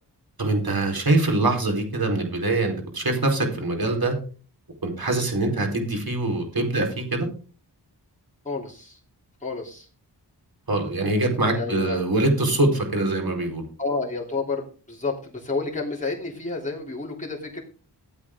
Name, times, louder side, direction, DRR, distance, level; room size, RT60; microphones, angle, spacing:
voice 1, 0.4-4.1 4.8-7.3 10.7-13.6, right 2 dB, 60° right, 3 dB, 4.5 m, -23 dB
voice 2, 8.5-9.0 9.4-9.9 11.5-12.0 13.8-17.6, left 3 dB, 20° left, -4 dB, 3.5 m, -30 dB
15.0 x 8.5 x 3.8 m, 0.38 s
wide cardioid pair, 60°, 41 cm